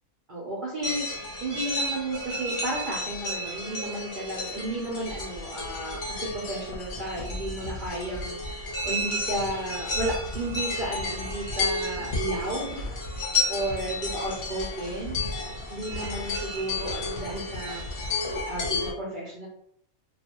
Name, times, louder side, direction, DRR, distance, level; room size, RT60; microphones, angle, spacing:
voice 1, 0.3-12.9 13.5-15.2 15.7-17.8 18.5-19.5, right 1 dB, 70° right, -4 dB, 0.4 m, -33 dB
sound 1, 0.8-18.9, left 2 dB, 50° left, 0.8 m, -32 dB
2.4 x 2.3 x 2.8 m, 0.67 s
omnidirectional pair, 1.5 m